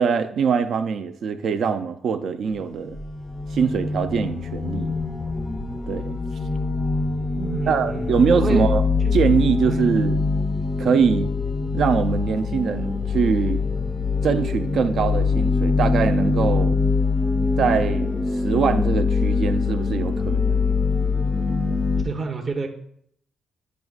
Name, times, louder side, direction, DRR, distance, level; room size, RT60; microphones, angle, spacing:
voice 1, 0.0-3.0 3.5-4.9 5.9-6.2 7.7-8.8 9.1-10.2 10.8-11.3 11.7-13.6 14.2-16.8 17.6-18.2 18.4-20.6, right 6 dB, 65° right, 0.5 m, -23 dB
sound 1, 2.5-22.0, left 4 dB, 20° left, 0.5 m, -23 dB
voice 2, 7.3-8.7 9.0-9.1 9.7-9.8 22.0-22.7, right 3 dB, 40° right, 0.8 m, -29 dB
9.3 x 5.1 x 2.4 m
cardioid pair, 90°, 0 cm